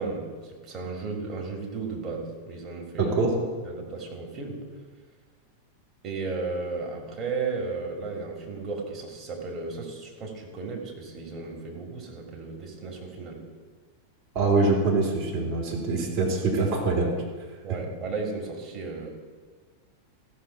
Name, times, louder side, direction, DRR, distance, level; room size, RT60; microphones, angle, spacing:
voice 1, 0.0-3.2 3.6-4.6 6.0-13.4 17.6-19.1, right 4 dB, 30° right, -1 dB, 2.6 m, -34 dB
voice 2, 3.0-3.3 14.3-17.1, right 3 dB, 45° right, -2 dB, 3.0 m, -24 dB
14.5 x 6.8 x 4.6 m, 1.5 s
figure-of-eight pair, 90°, 0 cm